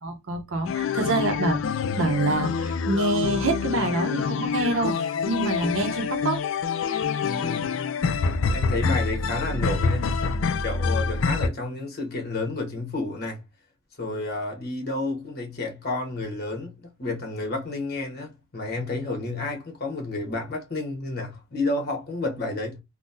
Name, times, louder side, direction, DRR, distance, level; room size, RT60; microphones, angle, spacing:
voice 1, 0.0-1.6 2.0-5.0 5.2-6.4, right 2 dB, 80° right, 0.7 m, -26 dB
sound 1, 0.6-11.5, left 5 dB, 70° left, 0.3 m, -26 dB
voice 2, 7.2-7.7 8.5-10.1 10.6-13.4 14.0-22.8, left 2 dB, 50° left, 1.1 m, -30 dB
3.8 x 2.2 x 2.6 m
head